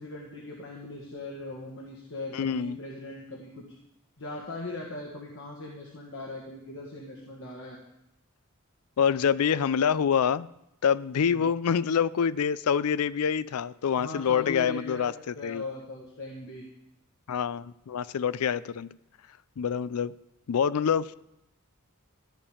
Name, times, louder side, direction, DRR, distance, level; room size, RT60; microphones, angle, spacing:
voice 1, 0.0-3.6 4.2-7.8 11.2-11.4 14.0-15.1 15.3-16.6, left 2 dB, 60° left, 1.7 m, -39 dB
voice 2, 2.3-2.8 9.0-10.5 10.8-15.6 17.3-18.9 19.6-20.1 20.5-21.2, left 7 dB, 90° left, 0.4 m, -26 dB
14.0 x 5.1 x 8.5 m
head